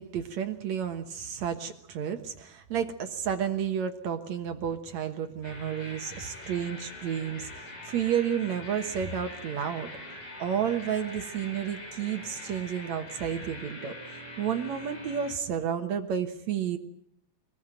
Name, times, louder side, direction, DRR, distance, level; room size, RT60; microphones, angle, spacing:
voice 1, 0.0-9.9 10.4-13.9 14.4-16.8, right 8 dB, 60° right, 6 dB, 2.1 m, -31 dB
sound 1, 5.4-15.3, left 1 dB, 90° left, 8.4 m, -43 dB
24.5 x 19.5 x 9.1 m, 0.73 s
omnidirectional pair, 4.4 m